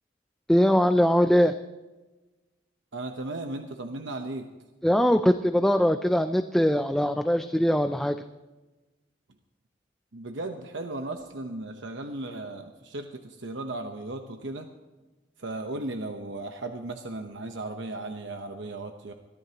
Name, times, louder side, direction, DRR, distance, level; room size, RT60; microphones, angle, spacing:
voice 1, 0.5-1.5 4.8-8.2, equal, ahead, 8 dB, 0.3 m, -22 dB
voice 2, 2.9-4.5 10.1-14.7 15.4-19.1, right 2 dB, 80° right, 5 dB, 1.0 m, -36 dB
22.5 x 14.5 x 2.9 m, 1.2 s
head